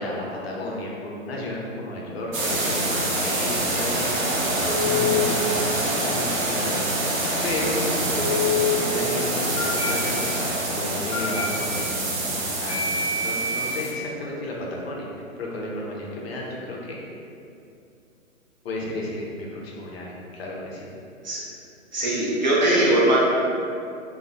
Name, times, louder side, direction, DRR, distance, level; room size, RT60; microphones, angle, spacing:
voice 1, 0.0-4.3 4.7-6.8 7.4-15.1 15.4-17.0 18.6-20.9, left 1 dB, 50° left, -3 dB, 0.6 m, -33 dB
sound 1, 2.3-13.9, right 1 dB, 85° right, 0.8 m, -26 dB
Telephone, 4.7-5.2 8.2-8.7 9.6-9.9 11.1-11.4 12.7-13.7, left 4 dB, 15° left, 0.8 m, -26 dB
voice 2, 21.9-23.2, right 1 dB, 35° right, -6 dB, 0.4 m, -20 dB
2.2 x 2.1 x 3.8 m, 2.6 s
hypercardioid pair, 150°, 40 cm